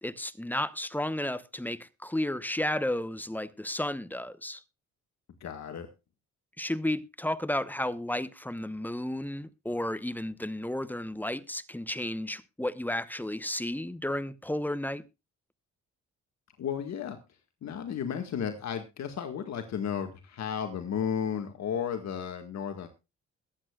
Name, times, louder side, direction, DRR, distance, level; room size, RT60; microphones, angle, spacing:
voice 1, 0.0-4.6 6.6-15.0, left 1 dB, 5° left, 0.9 m, -33 dB
voice 2, 5.4-5.9 16.6-17.2 17.6-22.9, left 8 dB, 60° left, 1.8 m, -33 dB
21.5 x 8.7 x 2.3 m
cardioid pair, 90°, 30 cm